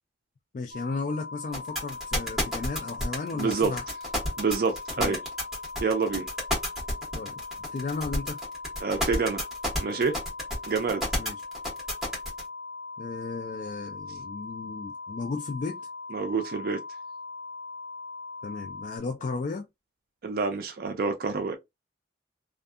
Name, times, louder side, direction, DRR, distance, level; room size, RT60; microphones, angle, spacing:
voice 1, 0.5-3.8 5.0-5.1 7.1-7.4 7.7-8.4 11.2-11.4 13.0-15.8 18.4-19.6, left 4 dB, 45° left, 0.3 m, -34 dB
sound 1, 0.7-19.0, left 3 dB, 30° right, 1.2 m, -40 dB
sound 2, 1.5-12.4, equal, ahead, 1.3 m, -30 dB
voice 2, 3.4-3.7 4.4-5.2 5.8-6.3 8.8-9.4 9.8-10.2 10.7-11.1 16.1-16.8 20.2-21.6, right 4 dB, 55° right, 0.4 m, -27 dB
2.6 x 2.4 x 2.3 m
head